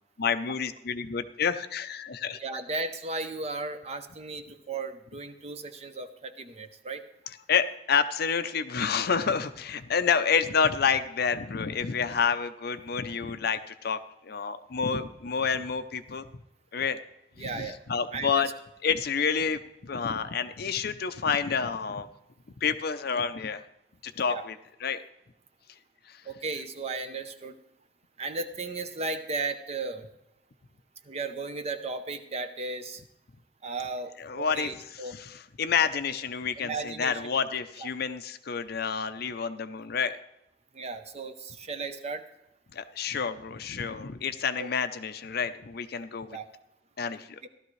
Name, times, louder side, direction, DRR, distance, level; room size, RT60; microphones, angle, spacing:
voice 1, 0.2-2.4 7.3-16.3 16.7-17.0 17.4-18.5 18.8-22.1 22.6-23.6 24.0-25.0 26.1-26.2 34.2-40.2 42.7-46.4 47.0-47.4, left 6 dB, 55° left, 10 dB, 0.6 m, -29 dB
voice 2, 2.4-7.0 17.4-17.8 18.1-18.5 24.3-24.4 26.3-27.6 28.2-30.0 31.1-33.0 33.6-35.1 36.6-37.2 40.7-42.2 44.6-44.7 46.3-46.5 47.4-47.5, right 3 dB, 35° right, 9 dB, 0.7 m, -35 dB
15.5 x 12.0 x 3.2 m, 0.87 s
head